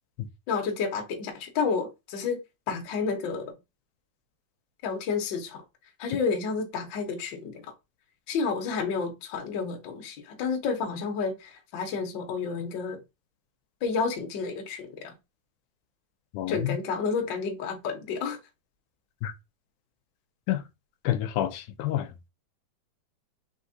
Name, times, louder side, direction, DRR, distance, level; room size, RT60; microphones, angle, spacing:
voice 1, 0.5-2.4 2.7-3.5 4.8-5.6 6.0-7.7 8.3-13.0 13.8-15.1 16.5-18.4, left 5 dB, 60° left, 1.2 m, -30 dB
voice 2, 16.3-16.8 19.2-19.3 20.5-20.6 21.0-22.1, left 12 dB, 85° left, 2.0 m, -28 dB
4.6 x 3.6 x 2.7 m
omnidirectional pair, 3.5 m